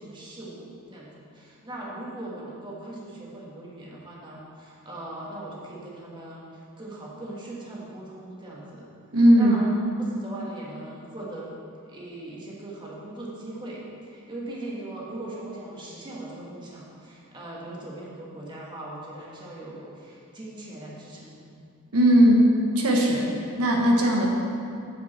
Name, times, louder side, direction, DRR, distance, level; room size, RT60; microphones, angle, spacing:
voice 1, 0.0-8.9 9.4-9.7 10.0-11.5 11.9-21.5, right 1 dB, 20° right, -5 dB, 1.5 m, -39 dB
voice 2, 9.1-9.6 21.9-23.3 23.6-24.3, equal, 80° right, -1 dB, 1.2 m, -18 dB
7.9 x 5.3 x 7.3 m, 2.5 s
head